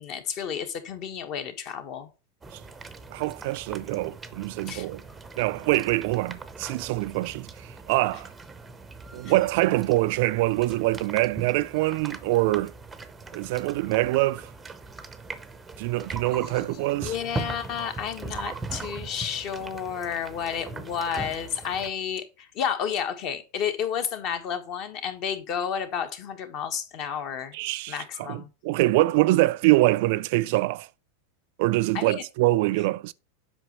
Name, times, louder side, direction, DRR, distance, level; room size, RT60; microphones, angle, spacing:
voice 1, 0.0-2.1 4.7-4.9 9.2-9.3 16.3-27.6 27.9-28.5 31.9-32.2, left 8 dB, 40° left, 1.3 m, -31 dB
sound 1, 2.4-21.9, right 3 dB, 10° right, 0.7 m, -40 dB
voice 2, 3.1-5.0 5.4-8.3 9.1-12.7 13.3-14.5 15.8-17.1 27.5-30.9 31.6-33.1, right 19 dB, 55° right, 0.3 m, -24 dB
7.9 x 5.9 x 3.0 m
supercardioid pair, 155°, 0 cm